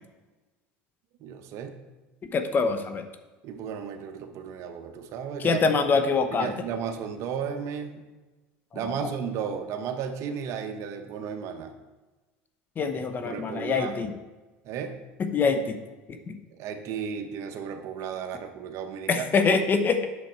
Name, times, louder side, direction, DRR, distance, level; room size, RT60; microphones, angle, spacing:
voice 1, 1.2-1.8 3.4-5.7 6.3-8.0 8.7-11.7 13.2-14.1 14.6-15.0 16.5-19.3, right 7 dB, 60° right, 7 dB, 1.0 m, -34 dB
voice 2, 2.3-3.0 5.4-6.5 12.8-14.1 15.2-15.8 16.3-16.4 19.1-20.1, left 4 dB, 35° left, 8 dB, 0.9 m, -24 dB
8.5 x 6.3 x 4.4 m, 1.2 s
supercardioid pair, 105°, 6 cm